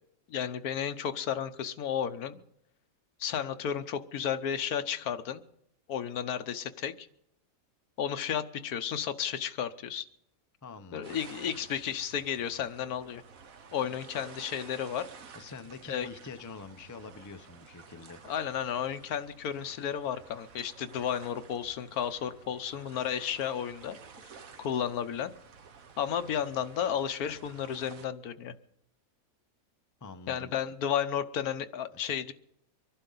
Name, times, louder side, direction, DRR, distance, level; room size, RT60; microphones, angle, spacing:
voice 1, 0.3-2.4 3.2-5.4 5.9-7.1 8.0-10.1 10.9-13.2 13.7-15.1 15.9-16.1 18.2-24.0 24.6-25.3 26.0-28.5 30.3-32.3, left 8 dB, 80° left, 10 dB, 1.3 m, -33 dB
voice 2, 10.6-11.2 15.3-18.2 30.0-30.5 31.9-32.0, left 4 dB, 25° left, 8 dB, 0.4 m, -46 dB
sound 1, 11.0-28.1, right 5 dB, 70° right, 1.5 m, -52 dB
25.0 x 11.5 x 3.9 m, 0.77 s
omnidirectional pair, 1.5 m